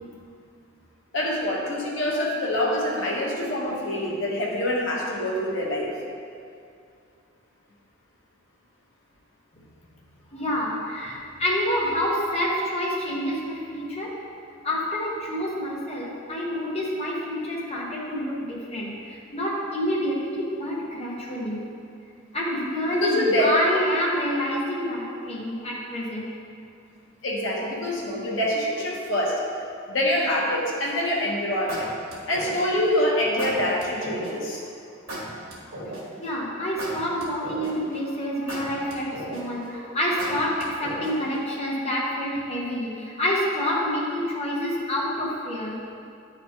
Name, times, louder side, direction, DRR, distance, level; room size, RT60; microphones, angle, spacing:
voice 1, 1.1-5.9 23.0-23.5 27.2-29.4 29.9-31.9 32.3-34.6, left 1 dB, 70° left, -3 dB, 1.2 m, -25 dB
voice 2, 10.3-14.2 14.6-21.6 22.3-26.3 36.2-45.8, equal, 30° left, -4 dB, 1.0 m, -28 dB
sound 1, 30.8-31.1 31.7-32.8 33.4-34.3 35.1-36.2 36.8-37.9 38.5-39.6 40.2-41.3, right 1 dB, 90° right, 1.5 m, -35 dB
9.6 x 4.1 x 2.9 m, 2.4 s
head